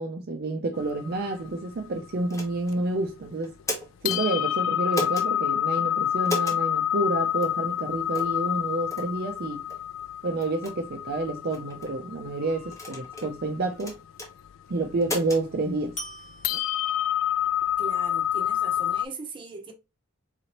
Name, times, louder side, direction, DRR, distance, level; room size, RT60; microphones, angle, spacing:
voice 1, 0.0-3.5 4.0-9.6 10.2-14.0 14.7-16.0, right 2 dB, 50° right, 0.5 m, -29 dB
sound 1, 0.7-3.1 3.6-3.7 4.0-19.0, left 11 dB, 65° left, 0.3 m, -28 dB
sound 2, 2.3-2.8 3.4-4.2 4.9-5.3 6.2-6.6 7.4-7.6 8.1-8.4 8.9-9.1 9.7-9.8 10.4-10.7 11.5-11.9 12.7-13.3 13.8-14.3 15.0-15.4, left 2 dB, 15° left, 1.0 m, -34 dB
sound 3, 12.4-13.1 16.0-17.4, equal, 35° left, 1.4 m, -43 dB
voice 2, 17.8-19.7, right 3 dB, 25° right, 0.8 m, -39 dB
4.0 x 2.9 x 2.9 m
head